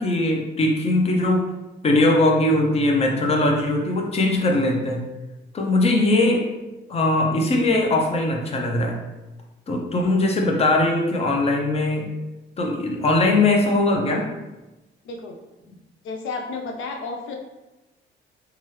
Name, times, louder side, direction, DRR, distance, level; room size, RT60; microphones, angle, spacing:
voice 1, 0.0-1.5 1.8-5.0 5.5-6.5 6.9-9.0 9.7-12.1 12.6-14.3, left 2 dB, 30° left, 1 dB, 0.6 m, -20 dB
voice 2, 16.0-17.4, left 3 dB, 80° left, 2 dB, 0.5 m, -31 dB
2.9 x 2.4 x 3.1 m, 1.0 s
cardioid pair, 90°, 20 cm